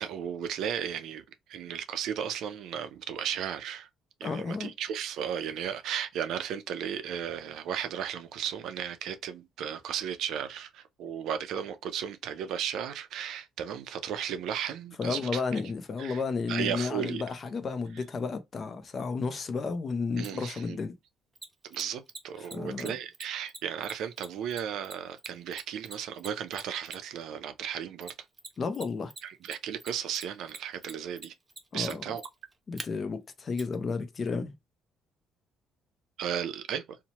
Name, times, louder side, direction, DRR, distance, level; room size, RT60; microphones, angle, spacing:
voice 1, 0.0-3.9 4.2-15.4 16.0-16.2 16.5-17.2 20.2-20.8 21.6-28.1 29.2-31.3 31.7-32.2 36.2-37.0, right 9 dB, 75° right, 0.4 m, -35 dB
voice 2, 4.2-4.7 15.0-20.9 22.5-22.9 28.6-29.1 31.7-32.0 32.7-34.5, left 4 dB, 40° left, 0.5 m, -32 dB
Mechanisms, 20.2-20.3 21.4-27.2 28.0-28.8 29.1-32.9 33.6-33.7, right 3 dB, 20° right, 0.6 m, -43 dB
2.8 x 2.1 x 2.8 m
cardioid pair, 95°, 0 cm